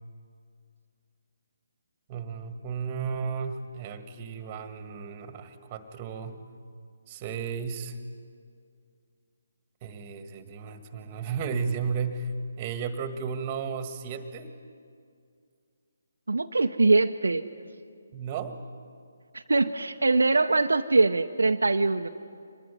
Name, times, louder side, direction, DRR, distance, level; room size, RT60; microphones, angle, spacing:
voice 1, 2.1-6.4 7.1-8.0 9.8-12.3 12.6-14.5 18.1-18.6, right 6 dB, 25° right, 9 dB, 1.8 m, -34 dB
voice 2, 16.3-17.4 19.3-22.1, right 3 dB, 70° right, 6 dB, 0.9 m, -23 dB
25.0 x 20.0 x 9.6 m, 2.3 s
figure-of-eight pair, 145°, 0 cm